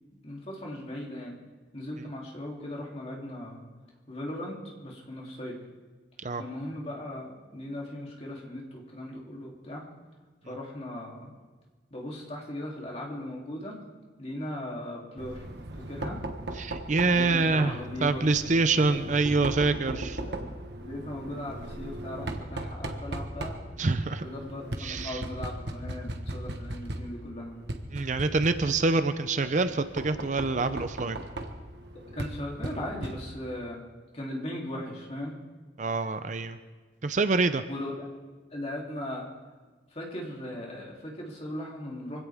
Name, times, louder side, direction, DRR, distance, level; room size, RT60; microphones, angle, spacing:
voice 1, 0.2-1.4 1.7-3.6 4.1-4.6 4.8-5.5 6.3-9.8 10.5-11.3 11.9-13.8 14.2-15.5 15.9-16.2 17.1-18.2 18.8-19.0 19.8-20.4 20.8-23.6 24.2-27.5 32.1-33.8 34.1-35.3 37.7-38.0 38.5-39.3 39.9-42.2, left 1 dB, 35° left, -3 dB, 3.1 m, -38 dB
Knock, 15.2-33.6, right 1 dB, 70° right, 1.4 m, -38 dB
voice 2, 16.6-20.2 23.8-24.3 24.8-25.2 27.9-31.2 35.8-36.6 37.0-37.6, right 3 dB, 45° right, 10 dB, 0.6 m, -26 dB
24.5 x 16.5 x 3.6 m, 1.4 s
head